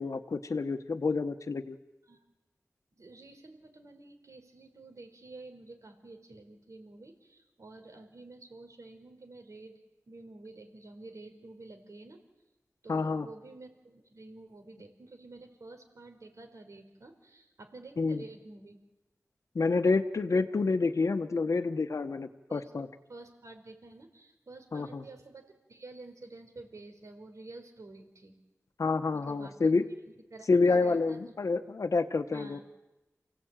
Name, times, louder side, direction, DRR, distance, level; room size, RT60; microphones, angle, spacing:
voice 1, 0.0-1.8 12.9-13.3 18.0-18.2 19.5-22.9 24.7-25.0 28.8-29.9 30.5-32.6, left 4 dB, 75° left, 9 dB, 1.2 m, -28 dB
voice 2, 2.9-9.8 10.1-12.2 12.8-18.8 22.5-22.7 23.1-28.3 29.1-29.7 30.1-31.3 32.3-32.6, right 2 dB, 75° right, 5 dB, 4.7 m, -50 dB
28.5 x 17.5 x 9.1 m, 1.0 s
wide cardioid pair, 65°, 5 cm